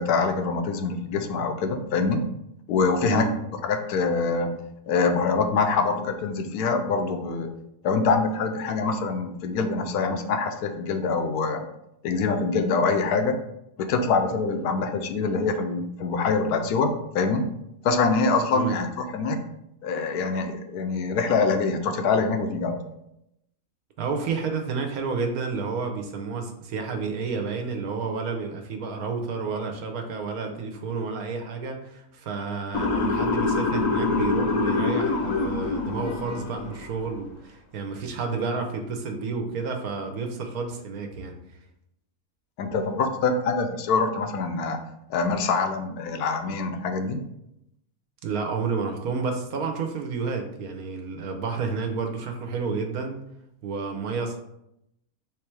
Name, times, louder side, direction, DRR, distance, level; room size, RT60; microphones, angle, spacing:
voice 1, 0.0-2.2 2.7-3.3 3.6-4.6 4.9-7.5 7.8-11.6 12.0-13.4 13.8-16.9 17.1-17.4 17.8-19.4 19.8-22.8 42.6-44.8 45.1-47.2, left 4 dB, 90° left, 6 dB, 1.1 m, -24 dB
voice 2, 3.0-3.3 18.5-18.8 24.0-41.4 48.2-53.2 53.6-54.4, right 4 dB, 75° right, 4 dB, 1.2 m, -30 dB
Motor vehicle (road) / Siren, 32.7-36.9, left 3 dB, 65° left, 1.0 m, -25 dB
3.6 x 3.2 x 4.5 m, 0.81 s
omnidirectional pair, 1.6 m